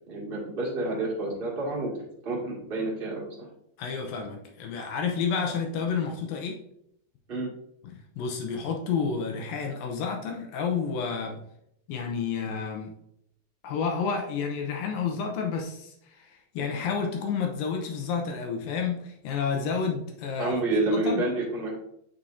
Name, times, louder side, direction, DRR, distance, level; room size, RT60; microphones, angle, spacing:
voice 1, 0.1-1.9 2.2-3.3 7.3-7.5 20.4-21.8, right 2 dB, 25° right, -4 dB, 1.3 m, -29 dB
voice 2, 3.8-6.6 7.8-11.4 11.9-12.9 13.6-20.6 20.9-21.2, left 6 dB, 75° left, 2 dB, 2.5 m, -30 dB
7.3 x 6.2 x 2.6 m, 0.75 s
omnidirectional pair, 4.4 m